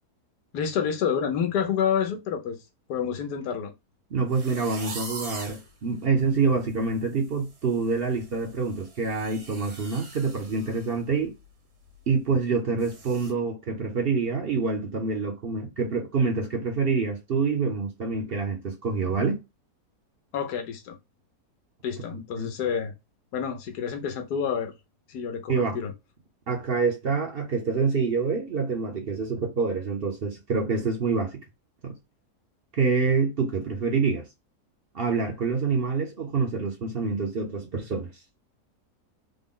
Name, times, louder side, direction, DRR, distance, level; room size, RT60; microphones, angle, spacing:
voice 1, 0.5-2.6 2.9-3.7 20.3-21.0 21.8-22.9 23.3-24.7 25.1-25.9, left 7 dB, 85° left, 1.3 m, -28 dB
voice 2, 4.1-11.3 12.1-19.4 22.1-22.5 25.5-25.8 26.5-31.4 31.8-31.9 32.7-34.3 34.9-38.1, right 4 dB, 50° right, 0.7 m, -26 dB
sound 1, 4.3-5.7 6.2-6.3 6.7-7.0 7.2-10.9 11.3-11.4 11.9-12.0 12.8-13.3, right 3 dB, 75° right, 1.7 m, -42 dB
3.7 x 2.1 x 3.7 m
omnidirectional pair, 1.7 m